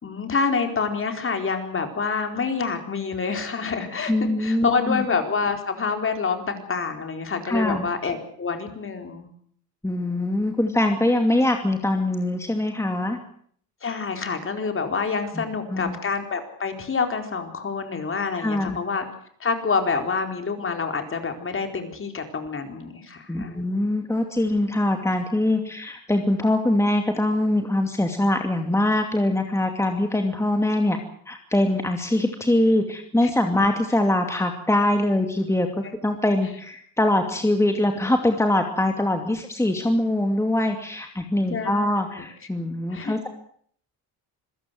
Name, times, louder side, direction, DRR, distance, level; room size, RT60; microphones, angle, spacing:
voice 1, 0.0-9.3 13.8-19.0 19.4-23.6 33.2-33.3 39.3-39.4 41.5-42.2 42.6-43.2, left 5 dB, 35° left, 6 dB, 4.6 m, -27 dB
voice 2, 4.1-5.0 7.5-7.9 9.8-13.2 15.3-15.4 15.7-16.0 18.4-18.8 23.3-31.0 31.3-43.3, left 1 dB, 5° left, 5 dB, 2.5 m, -23 dB
26.5 x 16.5 x 7.8 m, 0.62 s
cardioid pair, 95°, 38 cm